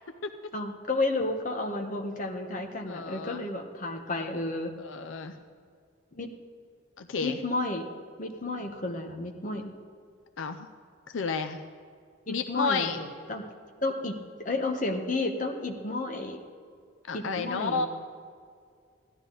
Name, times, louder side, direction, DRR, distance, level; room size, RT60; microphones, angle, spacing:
voice 1, 0.5-4.7 6.1-6.4 7.2-7.8 8.2-9.7 12.3-13.4 13.8-16.4 17.1-17.9, left 2 dB, 40° left, 3 dB, 1.2 m, -32 dB
voice 2, 2.9-3.4 4.8-5.3 7.0-7.4 10.4-10.7 11.1-11.6 12.3-13.0 17.1-17.9, left 4 dB, 80° left, 7 dB, 0.6 m, -31 dB
15.5 x 12.0 x 3.9 m, 2.2 s
head